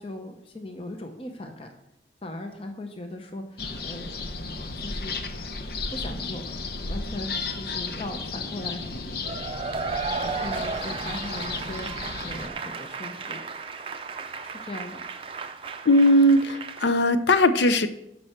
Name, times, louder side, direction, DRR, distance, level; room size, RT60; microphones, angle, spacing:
voice 1, 0.0-1.7 2.2-5.2 5.7-6.5 6.8-9.5 10.2-13.4 14.4-15.0, left 1 dB, 30° left, 4 dB, 0.8 m, -39 dB
sound 1, 3.6-12.5, left 3 dB, 60° left, 0.8 m, -34 dB
Cheering / Applause / Crowd, 9.3-16.9, right 4 dB, 30° right, 0.5 m, -34 dB
voice 2, 15.9-17.9, left 1 dB, 85° left, 12 dB, 0.6 m, -19 dB
11.5 x 5.5 x 4.5 m, 0.83 s
head